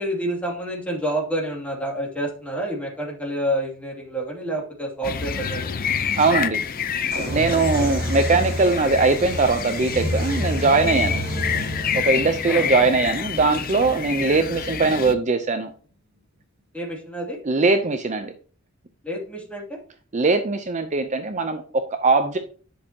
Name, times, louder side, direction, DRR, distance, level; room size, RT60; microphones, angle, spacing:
voice 1, 0.0-5.7 12.5-12.7 16.7-17.4 19.0-19.8, right 1 dB, 5° left, -2 dB, 2.5 m, -28 dB
sound 1, 5.0-15.1, left 7 dB, 45° left, 0.6 m, -28 dB
voice 2, 6.2-6.6 7.3-11.2 11.9-15.7 17.4-18.3 20.1-22.4, right 3 dB, 35° right, 8 dB, 0.6 m, -21 dB
sound 2, 7.1-14.7, equal, 50° right, 2.4 m, -29 dB
10.0 x 6.3 x 2.8 m, 0.41 s
head